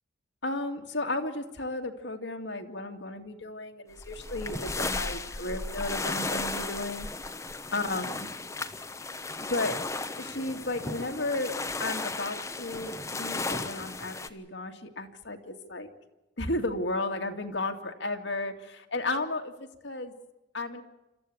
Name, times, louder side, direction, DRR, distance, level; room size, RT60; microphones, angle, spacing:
voice 1, 0.4-7.1 7.7-8.3 9.5-9.8 10.2-11.5 11.8-15.9 16.4-19.5 19.8-20.1 20.5-20.8, left 2 dB, 70° left, 4 dB, 2.3 m, -33 dB
sound 1, 4.0-14.3, left 3 dB, 15° left, 1.0 m, -35 dB
27.0 x 14.0 x 8.7 m, 0.98 s
head